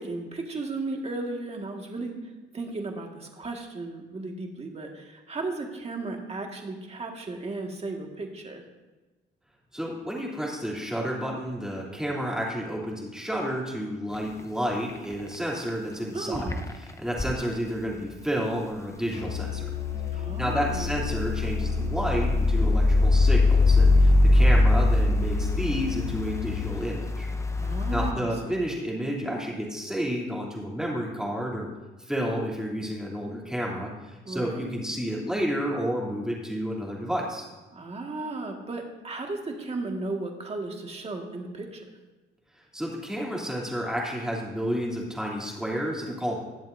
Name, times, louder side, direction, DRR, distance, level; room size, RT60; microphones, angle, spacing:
voice 1, 0.0-2.2 2.5-8.6 16.1-16.7 20.1-20.9 27.6-28.6 34.3-34.6 37.7-41.8, right 3 dB, 30° right, 2 dB, 1.9 m, -35 dB
voice 2, 9.7-16.4 16.8-19.7 20.1-27.3 27.9-31.7 32.0-37.5 42.7-46.4, equal, 5° right, -4 dB, 3.1 m, -31 dB
sound 1, 14.1-14.4 14.7-15.4 15.7-15.8 16.3-17.3 19.5-28.1, left 2 dB, 15° left, 0.8 m, -23 dB
Musical instrument, 19.1-26.9, left 9 dB, 60° left, 2.1 m, -32 dB
20.0 x 7.6 x 2.7 m, 1.2 s
cardioid pair, 90°, 20 cm